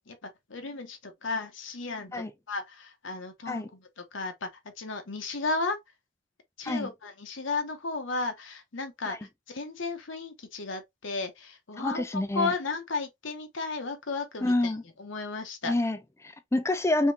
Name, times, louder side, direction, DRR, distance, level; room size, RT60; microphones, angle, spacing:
voice 1, 0.0-4.5 4.8-5.8 6.6-9.2 9.5-14.7 15.0-15.7, left 3 dB, 65° left, 0.9 m, -34 dB
voice 2, 11.8-12.5 14.4-14.8 15.6-17.1, left 2 dB, 15° left, 0.4 m, -28 dB
3.6 x 3.6 x 2.8 m
head